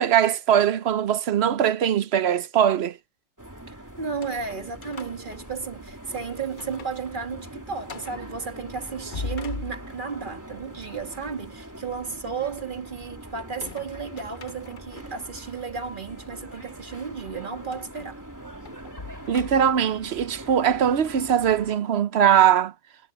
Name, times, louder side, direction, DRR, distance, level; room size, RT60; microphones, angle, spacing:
voice 1, 0.0-3.0 19.3-22.7, right 9 dB, 55° right, 0.9 m, -21 dB
sound 1, 3.4-21.8, right 1 dB, 15° right, 2.9 m, -43 dB
voice 2, 3.7-18.2, right 5 dB, 40° right, 1.8 m, -34 dB
sound 2, 4.0-6.1 6.5-7.0 7.4-7.5 7.9-8.3 8.9-10.2 13.4-15.2 15.8-15.9 17.7-19.9, left 4 dB, 40° left, 1.1 m, -41 dB
omnidirectional pair, 1.4 m